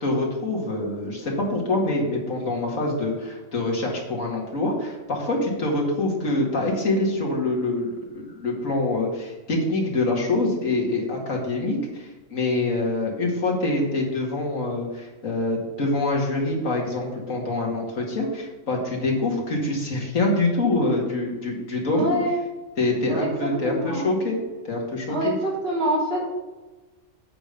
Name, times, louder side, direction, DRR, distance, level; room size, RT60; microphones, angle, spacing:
voice 1, 0.0-22.2 22.8-24.4 24.7-25.3, left 2 dB, 85° left, -1 dB, 2.4 m, -25 dB
voice 2, 21.9-22.4 23.1-23.3 23.6-24.1 25.1-25.3 25.6-26.2, equal, 45° right, -6 dB, 3.6 m, -25 dB
8.6 x 5.2 x 6.7 m, 1.2 s
omnidirectional pair, 1.4 m